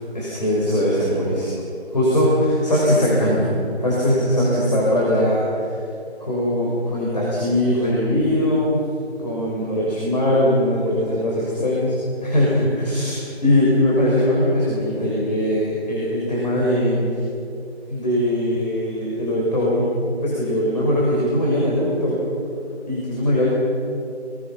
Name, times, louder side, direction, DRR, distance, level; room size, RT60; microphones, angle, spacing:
voice 1, 0.1-1.5 1.9-5.8 6.2-8.9 9.2-17.2 17.9-19.9 20.2-22.2 22.9-23.5, left 1 dB, 40° left, -5 dB, 5.8 m, -20 dB
27.0 x 23.0 x 5.8 m, 2.6 s
figure-of-eight pair, 180°, 34 cm